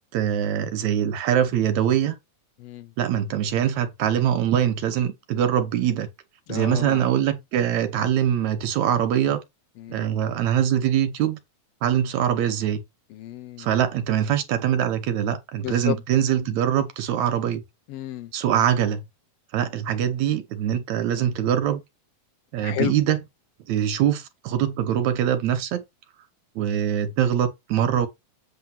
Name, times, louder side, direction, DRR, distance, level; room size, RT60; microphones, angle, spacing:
voice 1, 0.1-2.2 3.0-6.1 6.5-9.4 9.9-11.4 11.8-12.8 13.6-17.6 18.3-19.0 19.5-21.8 22.5-23.2 23.7-25.8 26.6-28.1, right 10 dB, 75° right, 2.1 m, -23 dB
voice 2, 2.6-2.9 6.5-7.0 9.8-10.1 13.1-13.7 15.6-16.0 17.9-18.3 22.6-22.9, left 12 dB, 90° left, 1.4 m, -31 dB
8.1 x 3.4 x 5.8 m
omnidirectional pair, 3.6 m